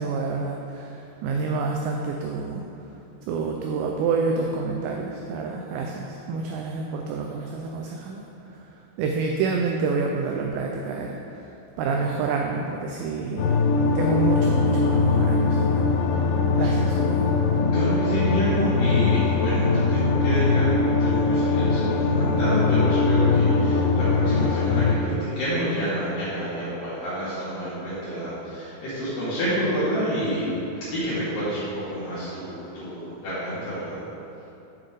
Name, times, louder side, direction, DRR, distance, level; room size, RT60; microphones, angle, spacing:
voice 1, 0.0-2.6 3.3-8.7 9.0-11.5 11.8-13.6 14.0-15.8 16.6-17.3, right 4 dB, 90° right, 1 dB, 2.5 m, -28 dB
sound 1, 13.4-25.0, left 3 dB, 90° left, 2.5 m, -21 dB
voice 2, 17.7-30.5 30.8-34.0, equal, 60° left, -13 dB, 3.7 m, -28 dB
9.0 x 6.5 x 3.7 m, 2.8 s
omnidirectional pair, 5.6 m